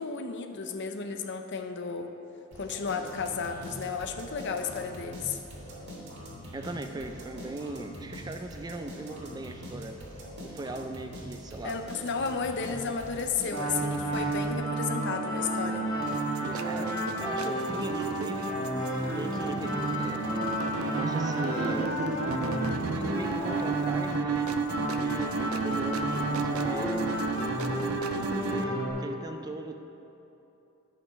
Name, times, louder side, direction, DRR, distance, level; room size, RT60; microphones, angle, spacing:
voice 1, 0.0-2.1 2.6-5.4 11.6-15.9, left 5 dB, 55° left, 6 dB, 0.6 m, -33 dB
sound 1, 2.5-14.7, equal, 55° right, 2.1 m, -43 dB
voice 2, 6.5-10.0 10.4-11.8 16.4-16.9 17.2-20.2 20.9-21.9 22.9-24.5 24.9-27.0 28.1-29.8, right 2 dB, 20° right, 6 dB, 0.4 m, -39 dB
sound 2, 13.5-28.9, right 1 dB, 20° left, 1.9 m, -31 dB
sound 3, 16.0-28.6, right 5 dB, 80° right, 0.4 m, -35 dB
10.5 x 6.0 x 5.7 m, 2.9 s
head